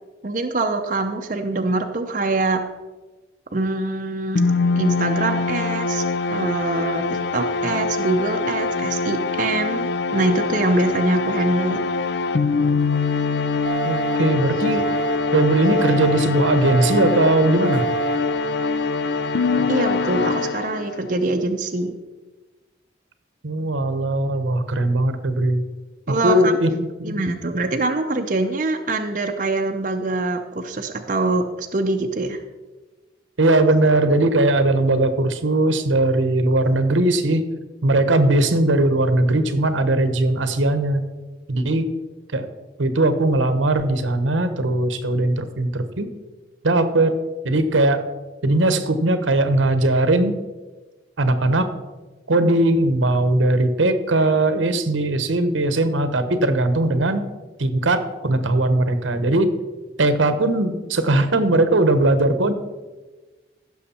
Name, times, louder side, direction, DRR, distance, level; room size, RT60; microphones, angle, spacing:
voice 1, 0.2-2.6 3.5-4.4 4.8-6.0 6.3-11.8 19.7-22.0 26.1-26.6 27.0-32.4, right 2 dB, 40° right, 4 dB, 0.6 m, -24 dB
sound 1, 4.4-21.1, left 4 dB, 60° left, 0.4 m, -23 dB
sound 2, 13.7-14.2 14.7-15.2 15.7-16.2 16.7-17.2 17.7-18.2, right 10 dB, 45° left, 1.6 m, -27 dB
voice 2, 13.8-14.9 15.3-17.8 23.4-25.6 26.2-27.2 33.4-37.5 37.8-41.0 41.5-41.9 42.3-42.5 42.8-46.1 46.6-47.1 47.4-48.0 48.4-50.3 51.2-51.7 52.3-57.2 57.6-59.5 60.0-62.5, right 2 dB, 85° right, 10 dB, 1.0 m, -19 dB
15.5 x 6.5 x 4.3 m, 1.2 s
head